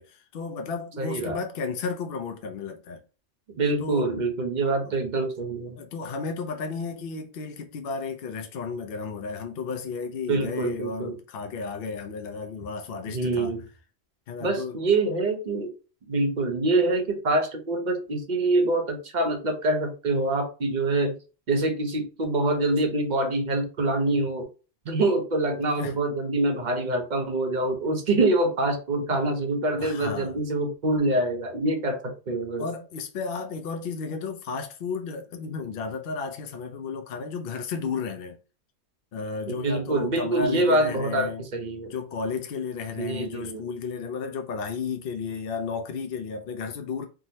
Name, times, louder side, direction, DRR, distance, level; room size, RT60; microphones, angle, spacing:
voice 1, 0.0-3.0 3.8-4.1 5.8-13.5 14.3-14.8 25.8-26.0 29.8-30.4 32.6-38.4 39.1-41.4 41.9-47.1, left 5 dB, 65° left, 0.7 m, -33 dB
voice 2, 1.0-1.4 3.5-5.8 10.3-11.2 13.1-13.6 14.4-15.7 16.1-21.2 21.5-24.5 24.9-32.7 39.5-41.9 43.0-43.6, right 2 dB, 50° right, 0.7 m, -25 dB
3.6 x 2.0 x 2.7 m
omnidirectional pair, 1.2 m